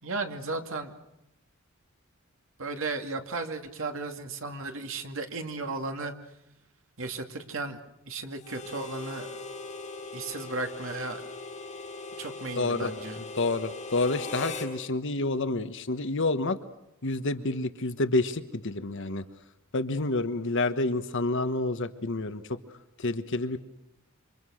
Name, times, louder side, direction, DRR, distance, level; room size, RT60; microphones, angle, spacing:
voice 1, 0.0-0.9 2.6-6.1 7.0-7.8 8.1-9.3 10.1-11.2 12.2-13.2, right 3 dB, 65° right, 5 dB, 2.5 m, -35 dB
Harmonica, 8.4-14.7, left 3 dB, 35° left, 4.8 m, -40 dB
voice 2, 12.6-12.9 13.4-16.6 17.0-19.2 19.7-22.6 23.0-23.6, left 2 dB, 60° left, 10 dB, 1.3 m, -28 dB
28.0 x 26.0 x 6.5 m, 0.88 s
head